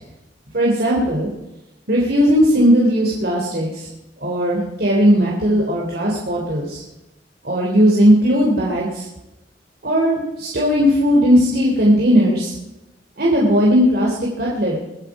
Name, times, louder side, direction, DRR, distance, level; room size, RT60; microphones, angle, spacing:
voice 1, 0.5-1.3 1.9-3.9 4.2-6.8 7.4-9.1 9.8-12.5 13.2-14.8, equal, 55° right, -3 dB, 3.4 m, -17 dB
23.0 x 10.5 x 4.9 m, 0.94 s
head